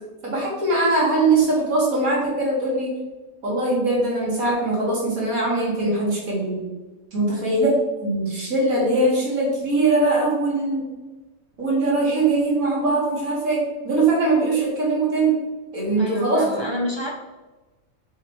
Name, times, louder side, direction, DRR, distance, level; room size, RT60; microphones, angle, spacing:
voice 1, 0.2-2.9 3.4-6.6 7.1-7.7 8.0-10.8 11.6-15.4 15.7-16.4, right 2 dB, 75° right, -5 dB, 2.6 m, -21 dB
voice 2, 16.0-17.1, equal, 35° right, -1 dB, 0.4 m, -28 dB
6.4 x 3.3 x 4.8 m, 1.1 s
omnidirectional pair, 1.5 m